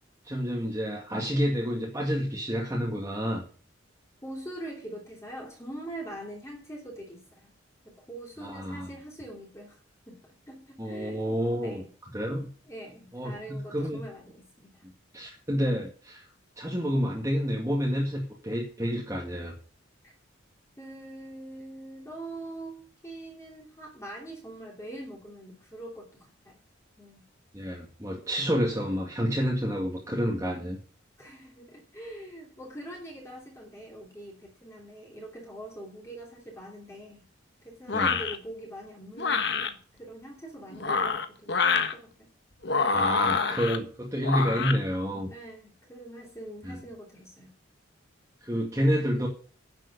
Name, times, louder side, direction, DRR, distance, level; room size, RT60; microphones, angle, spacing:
voice 1, 0.2-3.4 8.4-8.9 10.8-11.8 12.1-12.5 13.1-14.0 14.8-16.3 16.6-19.5 27.5-30.8 37.9-38.2 42.9-45.3 46.6-46.8 48.4-49.3, equal, 15° right, -2 dB, 2.2 m, -29 dB
voice 2, 4.2-7.5 7.8-9.8 10.1-11.9 12.7-14.8 20.0-20.1 20.8-26.6 27.0-27.2 31.2-37.2 37.6-42.3 45.2-47.5, right 1 dB, 15° left, -1 dB, 2.9 m, -43 dB
sound 1, 37.9-38.4 39.2-39.7 40.7-41.9 42.6-43.8 44.2-44.8, left 5 dB, 55° left, 1.3 m, -26 dB
11.0 x 7.6 x 8.3 m, 0.40 s
head